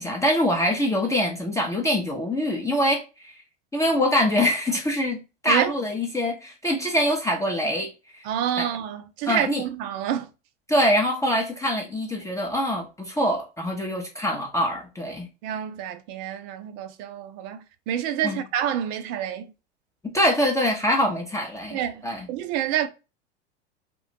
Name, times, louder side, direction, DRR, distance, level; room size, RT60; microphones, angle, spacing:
voice 1, 0.0-3.4 3.7-5.2 5.4-8.3 8.6-8.7 9.3-9.6 10.7-15.3 18.2-18.4 20.1-22.3, equal, 10° left, 0.5 m, -24 dB
voice 2, 8.2-10.3 15.4-19.5 21.7-22.9, right 10 dB, 50° right, 0.5 m, -28 dB
2.4 x 2.2 x 2.8 m
hypercardioid pair, 95°, 33 cm